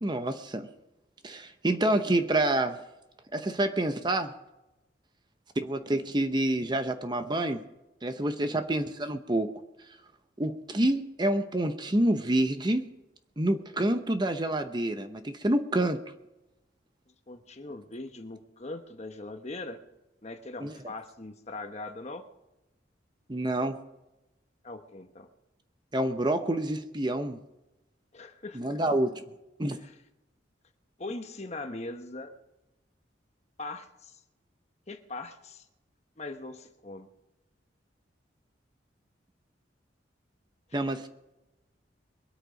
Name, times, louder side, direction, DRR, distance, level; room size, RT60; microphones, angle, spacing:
voice 1, 0.0-0.7 1.2-2.8 3.3-4.3 5.6-7.6 8.0-9.5 10.4-12.9 13.4-16.0 20.6-20.8 23.3-23.8 25.9-27.4 28.5-29.2 29.6-29.8 40.7-41.1, right 1 dB, 25° right, 8 dB, 0.8 m, -27 dB
voice 2, 17.3-19.8 20.2-22.2 24.6-25.3 28.1-28.8 29.7-29.9 31.0-32.3 33.6-34.2 34.9-35.6 36.2-37.1, left 2 dB, 35° left, 7 dB, 1.1 m, -41 dB
22.5 x 8.8 x 5.2 m, 0.96 s
head